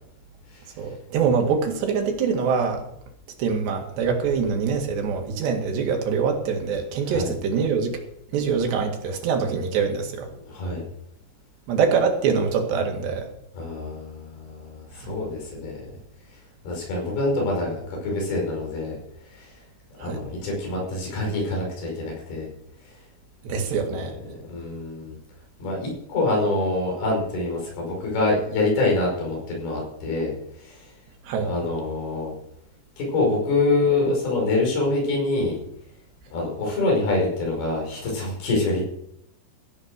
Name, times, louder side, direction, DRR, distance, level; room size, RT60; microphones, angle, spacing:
voice 1, 0.8-2.8 3.4-7.9 8.3-10.3 11.7-13.3 15.0-15.2 20.0-20.3 23.4-24.1 31.3-31.5, right 6 dB, 75° right, 3 dB, 4.1 m, -24 dB
voice 2, 10.4-10.8 13.5-15.8 16.6-19.0 19.2-19.5 20.0-22.5 22.8-22.9 23.5-23.6 23.9-24.1 24.5-25.2 25.6-30.3 30.6-30.9 31.4-32.3 33.0-35.6 36.3-38.8, left 2 dB, 60° left, -2 dB, 7.2 m, -25 dB
16.0 x 8.2 x 6.4 m, 0.75 s
omnidirectional pair, 5.1 m